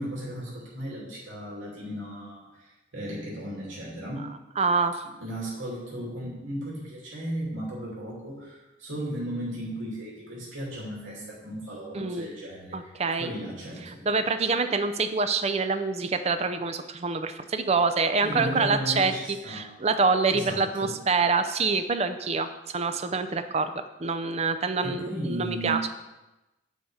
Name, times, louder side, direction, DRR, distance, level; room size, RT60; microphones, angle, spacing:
voice 1, 0.0-4.3 5.2-14.0 18.2-19.7 20.3-20.9 24.8-25.9, equal, 85° right, -5 dB, 2.7 m, -35 dB
voice 2, 4.6-5.0 11.9-12.3 12.7-13.3 14.1-19.1 19.5-25.9, right 4 dB, 35° right, 9 dB, 0.5 m, -26 dB
8.6 x 5.3 x 4.8 m, 1.0 s
head